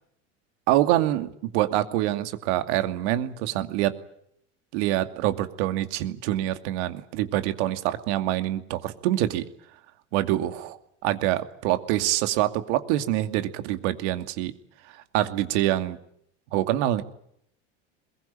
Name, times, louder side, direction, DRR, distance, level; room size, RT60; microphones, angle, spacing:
voice 1, 0.7-3.9 4.7-9.4 10.1-10.8 11.0-14.5 15.1-16.0 16.5-17.0, right 14 dB, 70° right, 8 dB, 2.5 m, -25 dB
22.0 x 22.0 x 9.0 m, 0.71 s
supercardioid pair, 100°, 36 cm